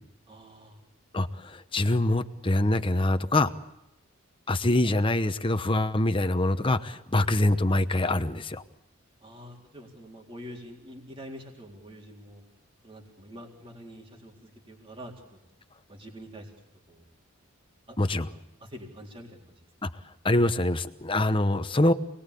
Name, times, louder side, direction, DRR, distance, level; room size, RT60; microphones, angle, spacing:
voice 1, 0.3-0.8 9.2-12.4 12.8-15.1 15.9-16.5 16.9-17.0 17.9-19.4, equal, 25° right, 0 dB, 3.9 m, -46 dB
voice 2, 1.1-3.5 4.5-8.6 18.0-18.3 19.8-19.9 20.2-21.9, left 1 dB, 25° left, 10 dB, 1.0 m, -24 dB
28.0 x 20.5 x 8.4 m, 0.87 s
head